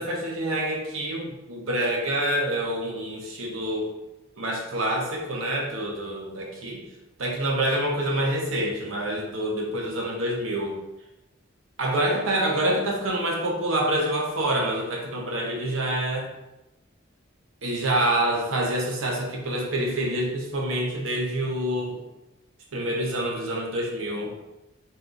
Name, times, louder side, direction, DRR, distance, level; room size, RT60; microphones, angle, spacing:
voice 1, 0.0-3.9 4.4-6.8 7.2-10.8 11.8-16.3 17.6-22.0 22.7-24.3, right 1 dB, 80° right, -1 dB, 0.7 m, -27 dB
2.7 x 2.3 x 3.7 m, 0.97 s
head